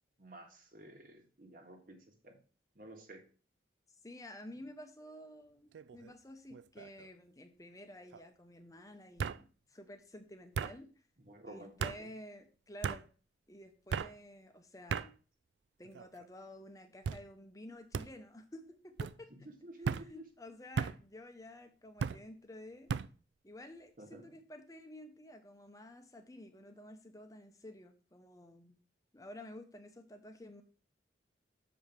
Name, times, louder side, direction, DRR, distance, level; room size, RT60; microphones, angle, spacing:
voice 1, 0.2-2.4 2.7-3.3 11.2-11.7 12.0-12.1 19.3-20.2 24.0-24.3, right 1 dB, 50° right, 4 dB, 1.6 m, -52 dB
voice 2, 4.0-10.9 11.5-13.1 13.5-15.1 15.8-19.3 20.0-22.9 23.4-28.8 29.1-30.6, left 1 dB, 20° left, 7 dB, 0.8 m, -51 dB
sound 1, 5.7-6.1 6.5-7.1 8.1-8.2 9.2-9.4 10.5-10.7 11.8-12.0 12.8-13.0 13.9-14.1 14.9-15.1 15.8-16.3 17.0-17.2 17.9-18.1 19.0-19.2 19.8-20.1 20.8-21.0 22.0-22.2 22.9-23.1, right 6 dB, 75° right, 0.3 m, -36 dB
6.9 x 5.0 x 5.9 m, 0.38 s
head